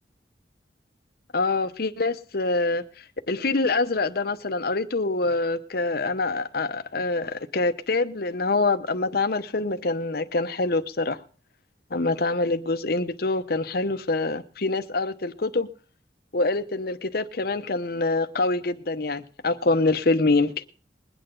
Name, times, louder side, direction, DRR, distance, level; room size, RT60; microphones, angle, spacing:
voice 1, 1.3-11.2 11.9-15.7 16.3-20.5, left 3 dB, 55° left, 10 dB, 0.9 m, -25 dB
21.5 x 9.0 x 3.8 m, 0.39 s
head